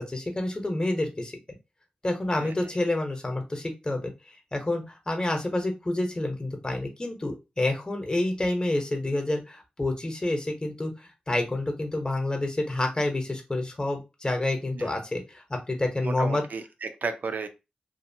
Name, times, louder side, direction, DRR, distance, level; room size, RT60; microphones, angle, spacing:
voice 1, 0.0-1.4 2.0-16.4, left 2 dB, 25° left, 3 dB, 0.9 m, -28 dB
voice 2, 2.4-2.7 14.7-14.9 16.0-17.5, right 4 dB, 70° right, 9 dB, 0.5 m, -34 dB
2.7 x 2.4 x 2.7 m, 0.26 s
cardioid pair, 55°, 3 cm